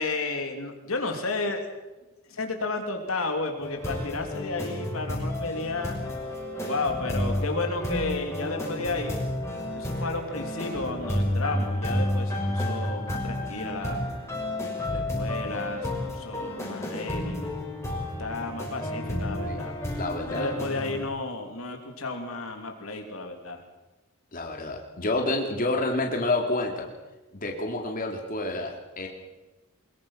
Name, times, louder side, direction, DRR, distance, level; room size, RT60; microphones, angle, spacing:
voice 1, 0.0-1.6 2.3-6.0 6.6-9.1 9.7-14.0 14.9-17.5 18.2-19.7 20.3-23.6, left 3 dB, 70° left, 4 dB, 3.1 m, -32 dB
sound 1, 3.6-21.0, left 1 dB, 15° left, 6.0 m, -31 dB
voice 2, 20.0-20.5 24.3-26.9 27.3-28.7 29.0-29.1, left 2 dB, 40° left, 2 dB, 2.7 m, -28 dB
23.5 x 21.5 x 5.8 m, 1.1 s
head